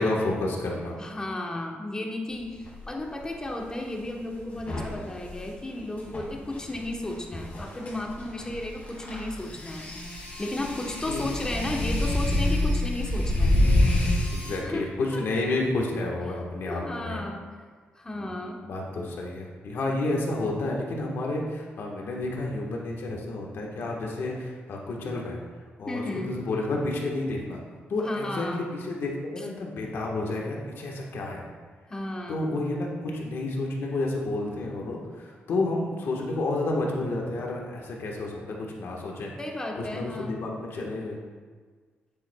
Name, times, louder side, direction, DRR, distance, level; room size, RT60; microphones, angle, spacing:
voice 1, 0.0-1.0 11.0-11.3 14.3-17.2 18.1-18.2 18.6-25.4 25.8-27.6 27.9-31.4 32.3-38.4 38.7-39.3 39.7-41.2, left 2 dB, 70° left, -2 dB, 1.4 m, -30 dB
voice 2, 1.0-9.9 10.4-13.6 14.6-15.6 16.6-17.5 18.0-18.7 25.9-26.4 28.0-28.7 29.4-29.5 31.9-32.6 39.4-40.4, left 1 dB, 20° left, 1 dB, 1.0 m, -34 dB
sound 1, 2.6-2.8 4.5-14.6, left 1 dB, 40° left, 2.2 m, -27 dB
9.3 x 8.7 x 2.3 m, 1.6 s
cardioid pair, 125°, 4 cm